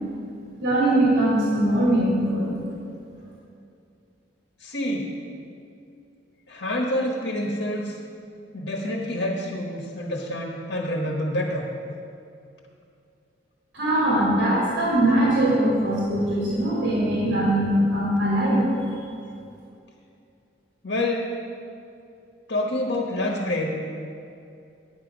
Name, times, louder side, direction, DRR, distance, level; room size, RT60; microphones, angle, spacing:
voice 1, 0.6-2.6 13.7-18.6, right 1 dB, 75° right, -6 dB, 2.6 m, -21 dB
voice 2, 4.6-5.1 6.5-8.0 8.5-11.7 20.8-21.4 22.5-23.7, left 1 dB, 60° left, 0 dB, 1.1 m, -27 dB
10.5 x 7.8 x 5.2 m, 2.6 s
head